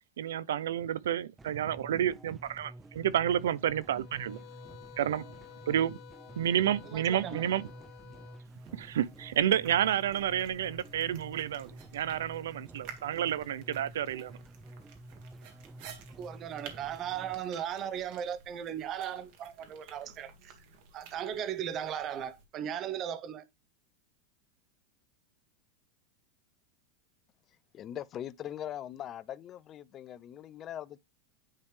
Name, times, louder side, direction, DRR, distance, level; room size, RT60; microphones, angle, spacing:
voice 1, 0.2-4.4 5.0-5.2 5.7-6.0 6.4-7.7 8.7-14.3, right 10 dB, 85° right, 0.5 m, -30 dB
sound 1, 1.4-17.4, right 1 dB, 15° right, 0.5 m, -50 dB
sound 2, 3.9-8.5, left 17 dB, 55° left, 0.9 m, -53 dB
voice 2, 6.9-7.5 16.2-20.5 20.9-23.4, right 9 dB, 40° right, 0.8 m, -37 dB
sound 3, 8.4-22.4, right 6 dB, 60° right, 1.7 m, -53 dB
voice 3, 27.7-31.0, left 11 dB, 35° left, 0.5 m, -41 dB
9.7 x 3.3 x 3.2 m
hypercardioid pair, 110°, 0 cm